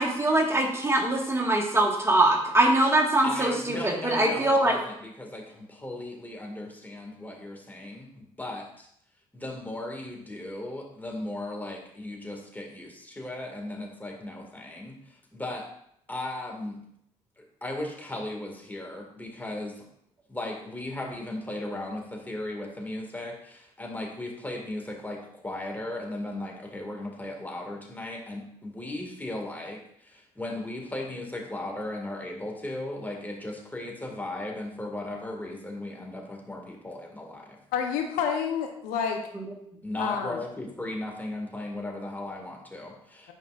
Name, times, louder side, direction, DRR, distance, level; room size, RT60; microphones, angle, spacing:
voice 1, 0.0-4.7 39.3-39.4, right 2 dB, 15° right, 0 dB, 1.7 m, -23 dB
voice 2, 3.2-8.9 9.3-15.7 16.1-16.8 17.4-19.9 20.3-37.6 39.8-43.3, left 1 dB, 10° left, 0 dB, 2.0 m, -36 dB
voice 3, 37.7-39.2 40.0-40.4, left 7 dB, 75° left, 3 dB, 0.8 m, -28 dB
9.1 x 5.2 x 2.5 m, 0.72 s
hypercardioid pair, 55°, 15 cm